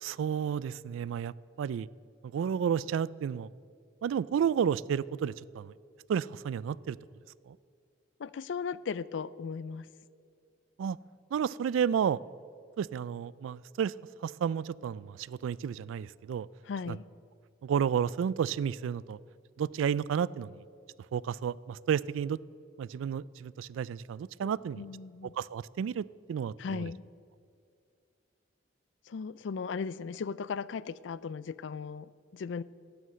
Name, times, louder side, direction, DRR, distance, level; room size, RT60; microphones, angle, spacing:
voice 1, 0.0-1.9 2.3-3.5 4.0-5.7 6.1-7.0 7.5-7.6 10.8-11.0 11.3-12.2 12.8-13.9 14.2-16.5 16.9-17.0 17.6-19.2 19.6-20.6 21.1-22.4 22.8-24.8 25.4-26.9, right 8 dB, 85° right, 22 dB, 0.3 m, -31 dB
voice 2, 8.2-9.9 16.6-17.0 24.4-25.3 26.6-27.0 29.1-32.6, left 5 dB, 70° left, 19 dB, 0.4 m, -37 dB
11.0 x 8.1 x 7.8 m, 2.3 s
head